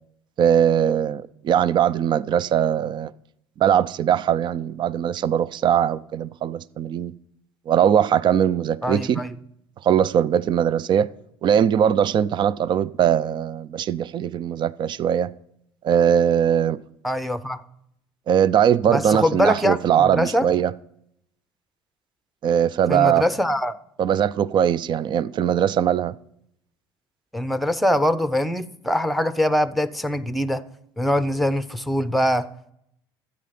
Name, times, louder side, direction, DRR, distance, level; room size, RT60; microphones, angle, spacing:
voice 1, 0.4-3.1 3.6-7.1 7.7-9.2 9.8-11.1 11.4-15.3 15.8-16.8 18.3-20.7 22.4-23.2 24.0-26.2, right 9 dB, 45° right, 0.5 m, -20 dB
voice 2, 8.8-9.3 17.0-17.6 18.8-20.5 22.9-23.7 27.3-30.6 31.0-32.5, equal, ahead, 0.8 m, -23 dB
12.5 x 8.8 x 5.8 m
supercardioid pair, 90°, 11 cm